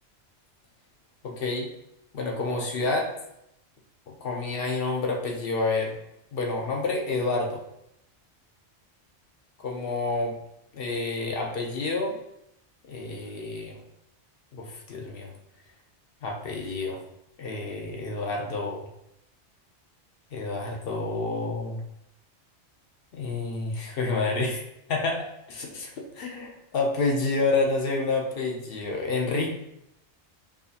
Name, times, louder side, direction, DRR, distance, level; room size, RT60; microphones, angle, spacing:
voice 1, 1.2-1.7 2.1-3.1 4.1-6.0 6.3-7.6 9.6-10.3 10.7-12.2 12.9-13.8 14.5-15.3 16.2-17.0 17.4-18.9 20.3-21.8 23.1-24.6 24.9-29.5, left 3 dB, 60° left, 0 dB, 0.9 m, -29 dB
4.8 x 2.6 x 2.5 m, 0.81 s
omnidirectional pair, 1.2 m